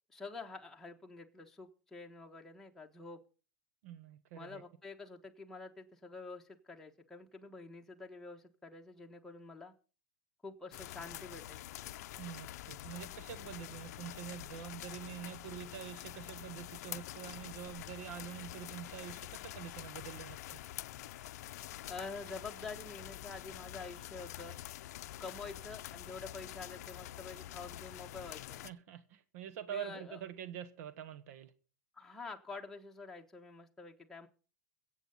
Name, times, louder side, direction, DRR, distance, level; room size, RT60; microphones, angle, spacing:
voice 1, 0.1-3.2 4.3-9.7 10.4-11.6 21.9-24.6 25.2-28.6 29.7-30.2 31.9-34.3, left 3 dB, 5° left, 1.4 m, -47 dB
voice 2, 3.8-4.6 12.2-20.6 28.6-31.5, right 10 dB, 70° right, 1.1 m, -46 dB
sound 1, 10.7-28.7, left 14 dB, 75° left, 0.5 m, -47 dB
22.5 x 8.0 x 4.0 m
hypercardioid pair, 120°, 9 cm